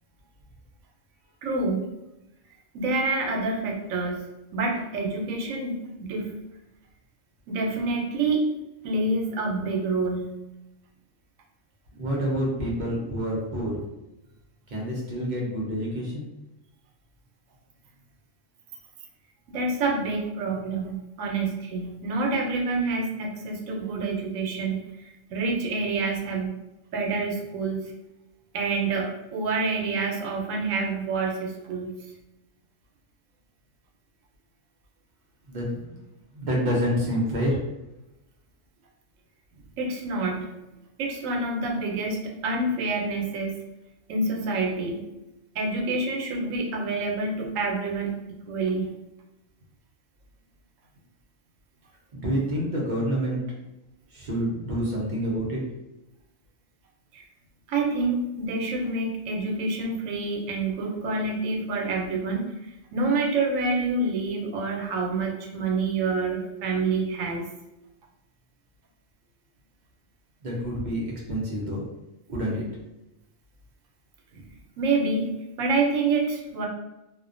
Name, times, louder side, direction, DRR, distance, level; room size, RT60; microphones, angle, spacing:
voice 1, 1.4-1.9 2.7-4.2 4.5-6.3 7.5-8.4 8.8-10.4 19.5-24.8 25.3-26.5 26.9-27.9 28.5-31.9 39.8-40.5 41.0-43.6 44.1-45.0 45.5-48.1 48.5-48.9 57.1-57.2 57.7-62.5 62.9-67.5 74.3-74.4 74.8-75.3 75.6-76.7, right 3 dB, 80° right, 1 dB, 1.0 m, -27 dB
voice 2, 12.0-13.8 14.7-16.2 35.5-35.9 36.3-37.6 52.1-53.6 54.1-55.6 70.4-71.9 72.3-72.6, equal, 55° right, -3 dB, 0.5 m, -28 dB
2.4 x 2.1 x 2.4 m, 0.96 s
omnidirectional pair, 1.4 m